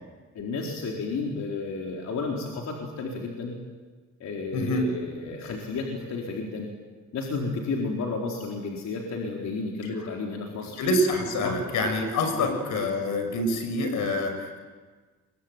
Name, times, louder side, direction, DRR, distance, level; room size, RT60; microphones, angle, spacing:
voice 1, 0.3-3.5 4.2-6.7 7.1-10.8 11.4-11.6 12.4-12.5, left 3 dB, 65° left, -1 dB, 4.4 m, -32 dB
voice 2, 4.5-4.9 10.8-14.6, left 1 dB, 80° left, 7 dB, 6.1 m, -26 dB
27.0 x 23.5 x 9.1 m, 1.4 s
cardioid pair, 90°, 30 cm